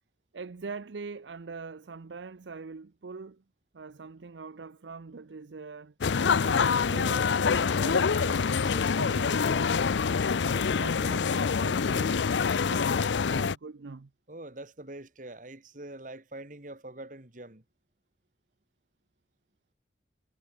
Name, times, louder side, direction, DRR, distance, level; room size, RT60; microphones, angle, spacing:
voice 1, 0.3-3.4 3.7-5.9 6.3-10.0 10.4-12.3 12.6-14.1, right 4 dB, 85° right, 0.6 m, -43 dB
sound 1, 6.0-13.6, left 5 dB, 90° left, 0.5 m, -26 dB
voice 2, 14.3-17.6, right 1 dB, 45° right, 2.2 m, -44 dB
head